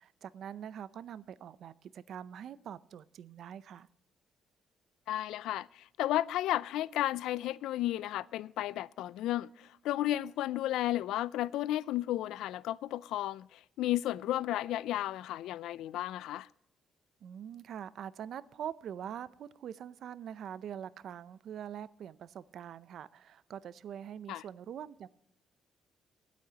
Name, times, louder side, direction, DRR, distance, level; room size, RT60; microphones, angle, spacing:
voice 1, 0.0-3.9 17.2-25.1, right 9 dB, 70° right, 0.5 m, -44 dB
voice 2, 5.1-16.5 24.3-24.4, left 14 dB, 90° left, 0.3 m, -33 dB
21.5 x 8.3 x 2.9 m
cardioid pair, 90°, 0 cm